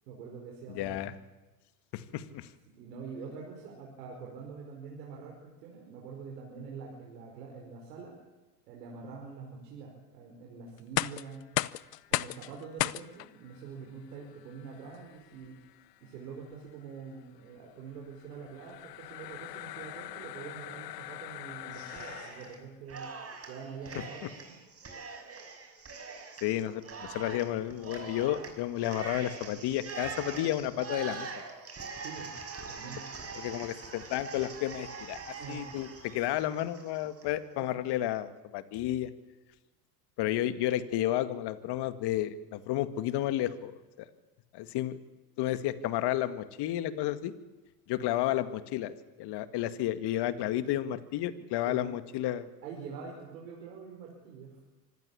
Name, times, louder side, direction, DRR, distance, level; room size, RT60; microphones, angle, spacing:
voice 1, 0.1-1.1 2.8-8.2 8.7-11.4 12.1-15.6 16.0-23.1 23.5-24.4 32.0-32.3 32.7-33.0 35.4-35.6 37.6-37.8 51.7-51.8 52.6-54.6, right 5 dB, 80° right, -1 dB, 5.3 m, -45 dB
voice 2, 0.7-1.1 1.9-2.5 26.4-31.3 33.4-39.1 40.2-43.7 44.0-44.1 44.5-45.0 45.4-47.3 47.9-52.5, left 13 dB, 55° left, 12 dB, 2.0 m, -32 dB
sound 1, 10.8-22.7, left 17 dB, 85° left, 0.8 m, -38 dB
Cheering, 21.7-22.6 22.9-37.3, right 4 dB, 30° right, 6.1 m, -43 dB
25.0 x 15.5 x 8.6 m, 1.2 s
hypercardioid pair, 85°, 48 cm